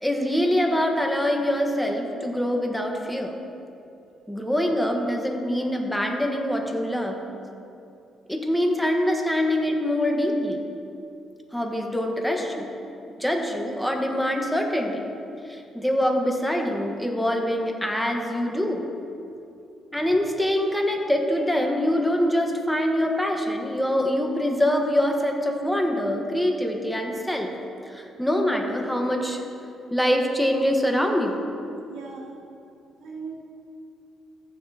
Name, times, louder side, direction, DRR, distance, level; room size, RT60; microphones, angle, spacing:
voice 1, 0.0-3.4 4.3-7.2 8.3-10.6 11.5-12.7 13.2-15.1 15.5-18.8 19.9-27.5 27.8-29.4 29.9-31.4, equal, 5° left, 2 dB, 1.3 m, -24 dB
voice 2, 31.9-32.4 33.0-33.3, right 5 dB, 80° right, -5 dB, 2.6 m, -38 dB
14.5 x 10.0 x 2.9 m, 2.7 s
cardioid pair, 90°, 0 cm